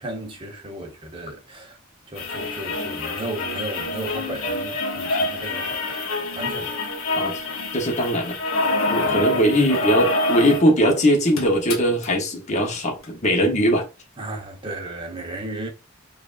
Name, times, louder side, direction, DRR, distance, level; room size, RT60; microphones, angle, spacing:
voice 1, 0.0-1.8 2.1-6.0 6.4-6.8 9.0-9.8 14.2-15.7, right 1 dB, 25° right, 1.0 m, -34 dB
sound 1, 2.2-10.7 11.0-11.1 11.3-12.1 13.0-13.1, left 2 dB, 85° left, 0.9 m, -26 dB
voice 2, 7.7-8.4 8.9-13.8, equal, 35° left, 0.9 m, -20 dB
5.2 x 2.5 x 2.5 m
head